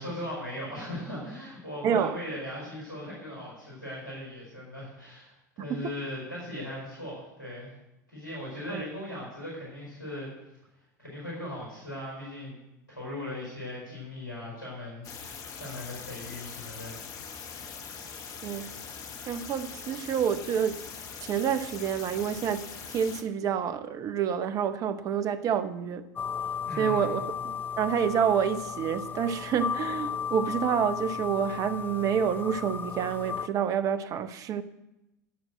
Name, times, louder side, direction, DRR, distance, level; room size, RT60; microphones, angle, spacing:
voice 1, 0.0-7.7 8.1-10.3 11.0-12.6 12.9-17.1 26.6-27.1, left 1 dB, 80° left, 4.5 m, -38 dB
voice 2, 1.8-2.2 5.7-5.9 8.7-8.8 18.4-18.7 19.3-20.9 21.2-26.1 26.8-34.6, right 8 dB, 35° right, 0.8 m, -28 dB
sound 1, 15.0-23.2, left 6 dB, 35° left, 1.1 m, -42 dB
sound 2, 26.2-33.5, left 7 dB, 20° left, 0.4 m, -34 dB
11.5 x 6.3 x 7.5 m
figure-of-eight pair, 80°, 10 cm